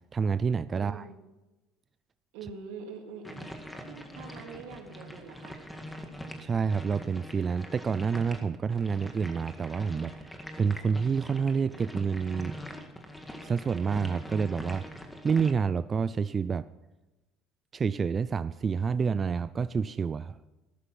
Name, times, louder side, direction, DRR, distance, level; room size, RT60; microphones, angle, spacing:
voice 1, 0.1-1.0 6.4-12.6 13.4-14.8 15.2-16.6 17.7-20.4, right 6 dB, 30° right, 14 dB, 0.4 m, -28 dB
voice 2, 0.7-1.1 2.3-3.5 3.9-5.6, right 5 dB, 85° right, 1 dB, 3.4 m, -44 dB
sound 1, 3.2-15.5, equal, 5° left, 1.9 m, -43 dB
13.5 x 12.5 x 5.8 m, 1.1 s
supercardioid pair, 105°, 0 cm